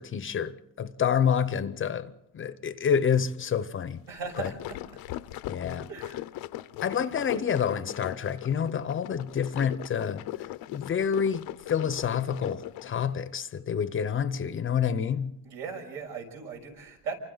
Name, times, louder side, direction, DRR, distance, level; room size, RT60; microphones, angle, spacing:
voice 1, 0.0-4.0 4.4-4.5 5.5-5.9 6.8-10.2 10.7-15.3, left 7 dB, 35° left, 0.7 m, -28 dB
sound 1, 4.1-13.0, left 15 dB, 70° left, 0.7 m, -39 dB
voice 2, 4.1-4.8 5.9-6.2 15.4-17.1, right 5 dB, 75° right, 6.4 m, -38 dB
28.0 x 25.0 x 3.9 m
cardioid pair, 150°, 37 cm